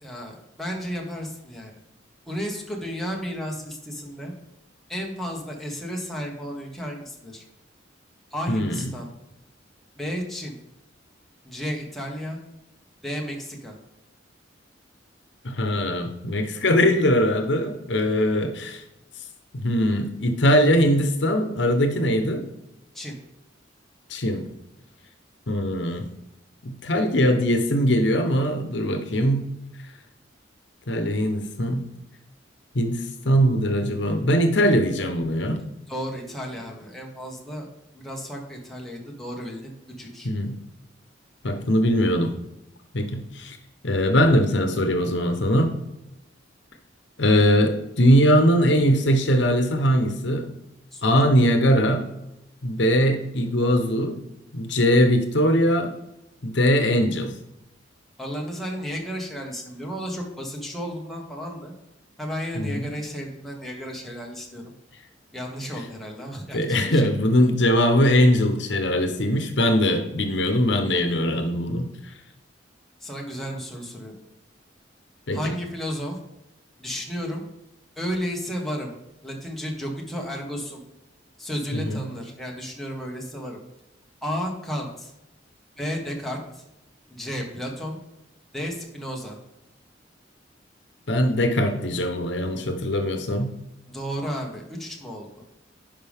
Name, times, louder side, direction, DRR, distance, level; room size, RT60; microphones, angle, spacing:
voice 1, 0.0-1.7 2.3-4.3 4.9-7.4 8.3-9.1 10.0-10.6 11.4-12.4 13.0-13.8 22.9-23.2 35.9-37.7 37.9-39.7 40.0-40.3 50.9-51.1 58.2-61.7 62.2-64.6 65.3-67.1 73.0-74.2 75.3-76.2 76.8-77.4 78.0-78.9 79.2-80.8 81.4-83.6 84.2-85.1 85.8-86.6 87.1-88.0 88.5-89.4 93.9-95.4, equal, ahead, -2 dB, 1.4 m, -33 dB
voice 2, 8.5-8.8 15.4-18.8 19.5-22.4 24.1-24.4 25.5-26.1 26.6-29.4 30.9-31.8 32.7-35.6 40.2-40.5 41.4-42.3 42.9-43.6 43.8-45.7 47.2-50.5 51.0-52.0 52.6-54.2 54.5-55.9 56.4-57.3 62.5-62.8 66.5-71.9 75.3-75.4 81.9-82.0 91.1-93.5, equal, 65° left, 6 dB, 1.0 m, -21 dB
10.5 x 5.2 x 3.6 m, 0.90 s
head